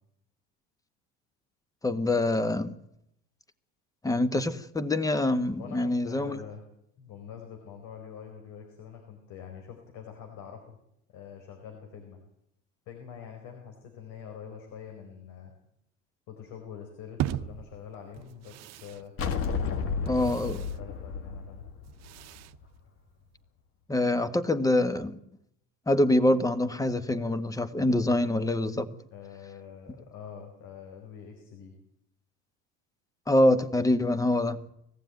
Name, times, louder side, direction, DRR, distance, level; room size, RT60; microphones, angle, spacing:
voice 1, 1.8-2.8 4.0-6.4 20.1-20.6 23.9-25.2 25.9-28.9 33.3-34.6, left 1 dB, 10° left, 12 dB, 1.4 m, -25 dB
voice 2, 5.6-6.6 7.0-10.8 11.1-12.2 12.9-15.5 16.3-19.1 19.8-21.6 29.1-31.7, left 7 dB, 70° left, 4 dB, 4.7 m, -45 dB
sound 1, 17.2-23.4, right 13 dB, 55° right, 0.9 m, -40 dB
sound 2, 19.2-22.6, left 5 dB, 45° left, 1.9 m, -32 dB
20.5 x 15.0 x 9.3 m, 0.77 s
cardioid pair, 115°, 33 cm